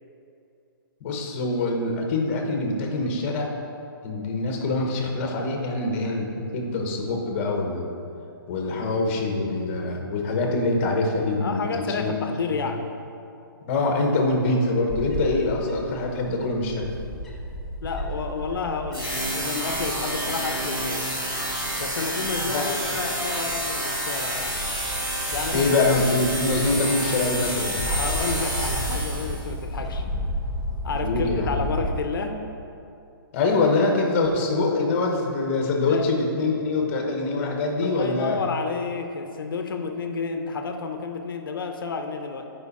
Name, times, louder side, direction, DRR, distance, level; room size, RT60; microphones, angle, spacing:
voice 1, 1.0-3.5 4.0-7.9 8.5-11.7 12.0-12.2 12.5-12.6 13.6-16.9 22.5-22.7 25.5-27.8 31.0-31.6 33.3-38.4, left 2 dB, 35° left, 1 dB, 1.2 m, -24 dB
voice 2, 11.4-12.9 17.8-21.1 21.8-24.6 25.3-25.9 27.9-30.0 30.8-32.4 35.8-36.1 37.8-42.4, left 4 dB, 70° left, 5 dB, 0.8 m, -30 dB
Bird / Wind, 14.9-31.9, equal, 5° left, 0.6 m, -34 dB
sound 1, 18.9-29.5, right 1 dB, 20° right, 1.5 m, -29 dB
9.6 x 5.1 x 4.2 m, 2.7 s
hypercardioid pair, 160°, 12 cm